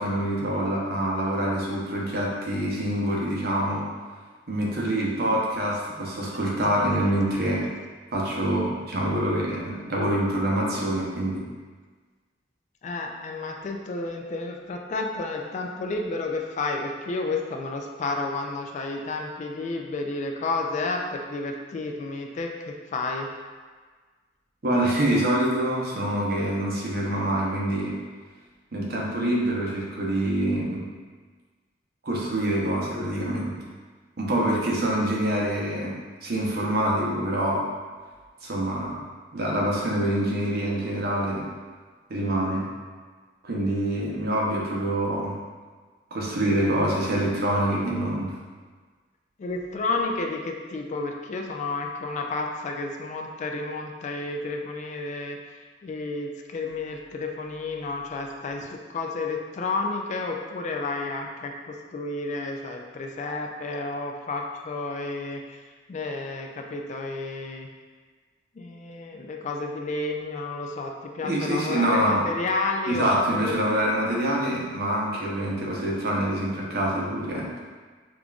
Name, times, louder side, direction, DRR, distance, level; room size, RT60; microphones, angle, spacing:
voice 1, 0.0-3.9 4.5-7.7 8.1-11.5 24.6-28.0 28.7-30.8 32.0-33.5 34.2-35.9 36.2-37.7 38.4-39.0 39.3-41.5 42.1-42.7 43.4-45.4 46.1-48.3 71.2-72.2 72.9-77.5, right 1 dB, 55° right, -3 dB, 0.7 m, -25 dB
voice 2, 12.8-23.3 49.4-65.6 65.9-67.7 68.5-73.6, left 3 dB, 40° left, 2 dB, 0.3 m, -31 dB
5.1 x 2.4 x 2.3 m, 1.5 s
head